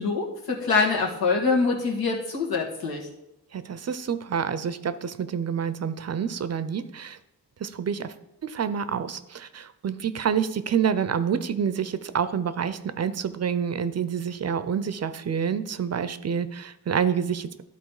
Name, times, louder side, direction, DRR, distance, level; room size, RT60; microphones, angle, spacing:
voice 1, 0.0-3.1, left 4 dB, 85° left, -1 dB, 1.8 m, -24 dB
voice 2, 3.5-7.2 7.6-8.1 8.4-17.6, right 7 dB, 45° right, 13 dB, 0.6 m, -28 dB
12.0 x 4.2 x 4.8 m, 0.89 s
cardioid pair, 100°, 36 cm